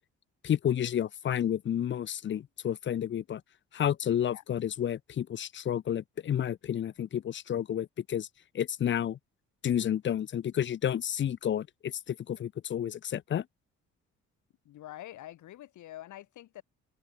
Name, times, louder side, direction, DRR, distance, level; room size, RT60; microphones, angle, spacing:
voice 1, 0.4-3.4 3.7-8.3 8.5-9.2 9.6-13.4, left 10 dB, 40° left, 0.5 m, -30 dB
voice 2, 14.7-16.6, left 14 dB, 75° left, 1.6 m, -46 dB
cardioid pair, 90°, 30 cm